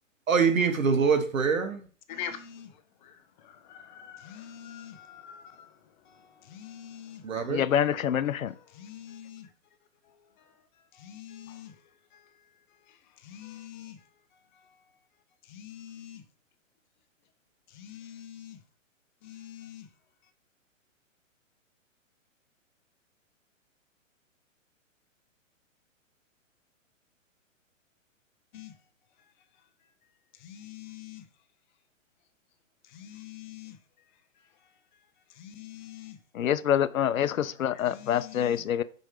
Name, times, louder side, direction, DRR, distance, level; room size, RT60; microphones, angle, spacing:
voice 1, 0.3-1.8 7.2-7.7, right 5 dB, 90° right, 1.4 m, -24 dB
voice 2, 2.1-2.7 3.0-3.2 3.4-5.7 6.1-6.2 6.5-7.2 8.7-9.5 10.9-11.7 13.2-14.0 15.5-16.2 17.7-18.6 19.2-19.9 28.5-28.7 30.4-31.2 32.9-33.8 35.4-36.2 37.7-38.6, left 10 dB, 35° left, 0.8 m, -44 dB
voice 3, 7.5-8.5 36.3-38.8, left 9 dB, 90° left, 0.6 m, -26 dB
5.4 x 4.5 x 4.8 m
hypercardioid pair, 135°, 39 cm